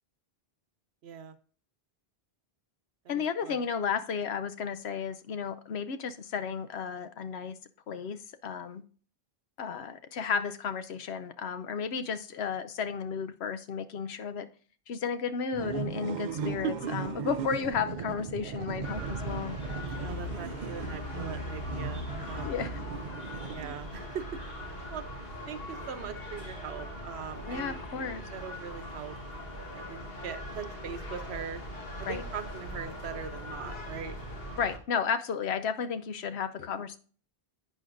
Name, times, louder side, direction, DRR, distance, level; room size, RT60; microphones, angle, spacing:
voice 1, 1.0-1.4 3.0-3.6 16.4-16.9 19.9-22.6 23.5-24.3 24.6-25.0 25.5-27.9 28.3-29.2 29.7-31.6 32.0-34.1, right 7 dB, 85° right, 10 dB, 1.0 m, -40 dB
voice 2, 3.1-7.6 7.9-8.8 9.6-14.5 14.9-19.6 22.4-22.8 27.5-28.2 32.1-32.2 34.6-37.0, left 6 dB, 90° left, 10 dB, 1.0 m, -33 dB
sound 1, 15.5-24.1, right 6 dB, 55° right, 0.6 m, -38 dB
sound 2, 18.8-34.8, left 1 dB, 65° left, 1.7 m, -40 dB
11.0 x 8.3 x 2.6 m, 0.42 s
omnidirectional pair, 1.1 m